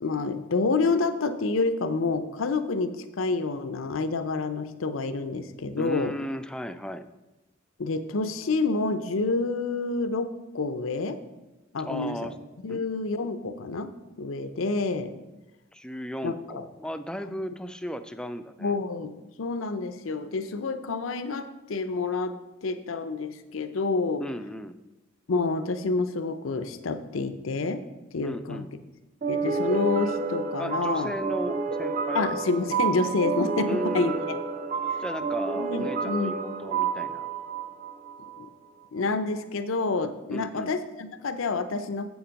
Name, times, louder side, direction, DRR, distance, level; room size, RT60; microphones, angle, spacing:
voice 1, 0.0-6.1 7.8-10.3 10.5-11.2 11.7-12.3 12.6-13.9 14.2-15.1 16.2-16.7 18.6-19.1 19.4-24.2 25.3-27.8 28.1-28.7 29.3-31.1 32.1-34.4 34.9-35.0 35.5-36.3 38.4-38.5 38.9-42.1, left 3 dB, 85° left, 10 dB, 0.6 m, -28 dB
voice 2, 5.8-7.1 11.9-12.3 12.7-12.9 15.7-18.8 24.2-24.8 28.2-28.7 30.6-32.3 33.7-34.4 35.0-37.3 40.3-40.7, equal, 5° left, 10 dB, 0.3 m, -35 dB
sound 1, 29.2-38.5, right 5 dB, 40° right, 0.6 m, -30 dB
8.0 x 7.2 x 5.2 m, 1.0 s
head